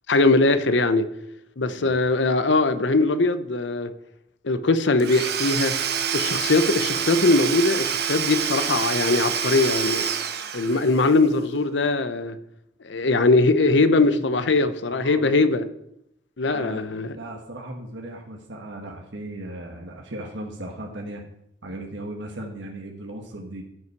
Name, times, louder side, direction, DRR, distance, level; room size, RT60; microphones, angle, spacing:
voice 1, 0.1-1.1 1.6-3.9 4.4-5.7 6.1-10.1 10.5-12.4 12.8-15.6 16.4-17.2, left 3 dB, 75° left, 0.8 m, -21 dB
Domestic sounds home sounds / Tools, 5.0-11.1, right 8 dB, 60° right, 0.9 m, -27 dB
voice 2, 14.9-15.3 16.5-21.3 21.6-23.6, right 1 dB, 80° right, 1.3 m, -37 dB
14.5 x 5.6 x 4.7 m
head